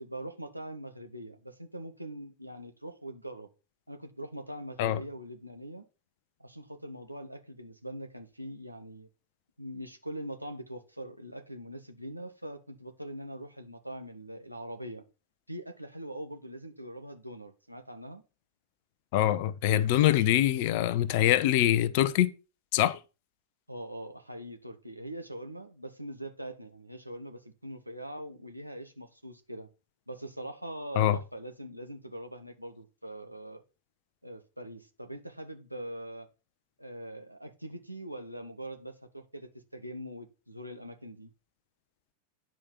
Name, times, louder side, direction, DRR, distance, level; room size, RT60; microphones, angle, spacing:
voice 1, 0.0-3.5 3.9-5.8 6.4-9.1 9.6-15.0 15.5-18.2 23.7-29.7 30.1-33.6 34.2-36.3 36.8-41.3, right 1 dB, 90° right, 1.3 m, -42 dB
voice 2, 19.1-22.3 22.7-23.0 31.0-31.2, left 12 dB, 50° left, 0.8 m, -24 dB
9.9 x 5.2 x 5.7 m
figure-of-eight pair, 90°, 0 cm